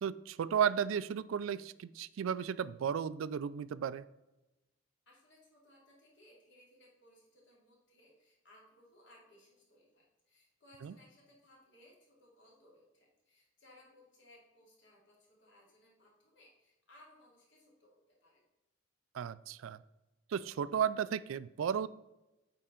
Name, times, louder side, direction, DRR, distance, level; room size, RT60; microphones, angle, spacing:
voice 1, 0.0-4.0 10.8-10.9 19.1-19.8 20.3-21.9, right 8 dB, 90° right, 17 dB, 0.3 m, -34 dB
voice 2, 5.1-18.4, left 1 dB, 65° left, -3 dB, 2.5 m, -63 dB
8.5 x 4.6 x 3.8 m, 1.0 s
head